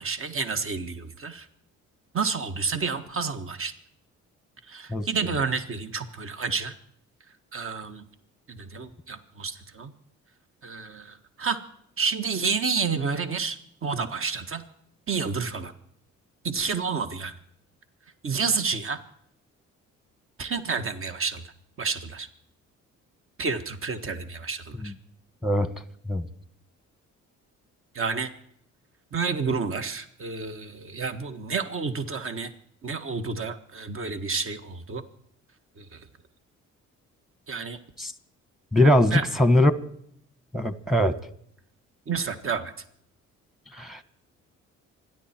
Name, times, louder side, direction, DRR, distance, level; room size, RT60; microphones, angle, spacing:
voice 1, 0.0-1.5 2.1-3.7 4.7-6.7 7.5-8.0 8.5-9.9 10.6-11.6 12.0-14.6 15.1-15.7 16.4-17.4 18.2-19.0 20.4-21.4 21.8-22.3 23.4-24.9 27.9-28.3 29.1-32.5 32.8-35.0 35.8-36.0 37.5-37.8 39.1-39.2 42.1-42.7, right 5 dB, 45° right, 9 dB, 1.6 m, -30 dB
voice 2, 38.7-39.7 40.5-41.2 43.7-44.0, left 1 dB, ahead, 12 dB, 1.5 m, -21 dB
27.0 x 11.0 x 4.5 m, 0.68 s
cardioid pair, 90°, 30 cm